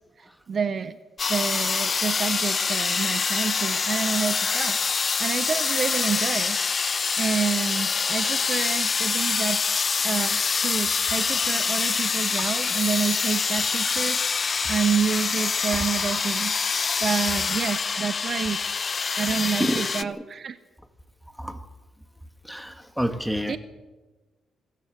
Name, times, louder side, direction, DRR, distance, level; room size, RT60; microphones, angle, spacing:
voice 1, 0.5-1.0 1.3-6.8 7.2-9.6 10.0-16.5 17.0-18.6 19.1-20.6 23.5-23.6, right 6 dB, 45° right, 0.8 m, -28 dB
sound 1, 1.2-20.0, left 5 dB, 40° left, 0.8 m, -25 dB
voice 2, 19.6-20.2 21.3-21.7 22.4-23.6, equal, ahead, 1.9 m, -30 dB
25.5 x 15.0 x 6.7 m
cardioid pair, 90°, 0 cm